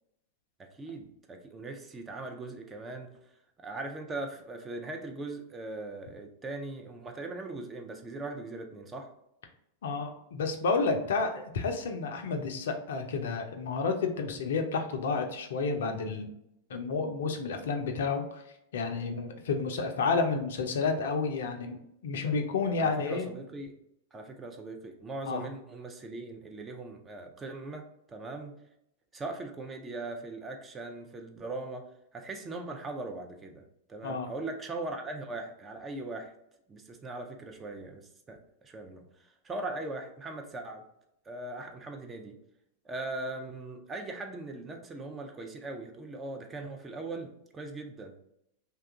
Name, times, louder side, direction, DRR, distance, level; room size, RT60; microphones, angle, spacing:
voice 1, 0.6-3.3 3.6-9.1 22.8-23.7 24.1-28.6 29.1-31.8 32.1-33.6 33.9-36.3 36.7-40.8 41.2-42.4 42.8-48.1, right 2 dB, 20° right, 3 dB, 0.5 m, -40 dB
voice 2, 9.8-16.3 16.7-18.4 18.7-23.3 25.3-25.5 34.0-34.3, left 4 dB, 65° left, 5 dB, 0.5 m, -30 dB
2.8 x 2.3 x 3.5 m, 0.78 s
figure-of-eight pair, 95°, 0 cm